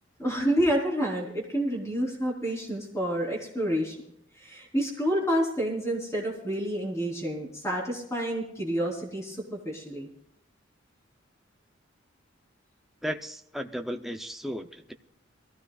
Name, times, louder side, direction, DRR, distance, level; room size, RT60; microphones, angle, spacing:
voice 1, 0.2-4.0 4.4-10.1, equal, 15° left, -2 dB, 3.9 m, -29 dB
voice 2, 13.0-14.9, equal, ahead, 4 dB, 0.7 m, -35 dB
23.0 x 15.0 x 2.4 m, 0.73 s
head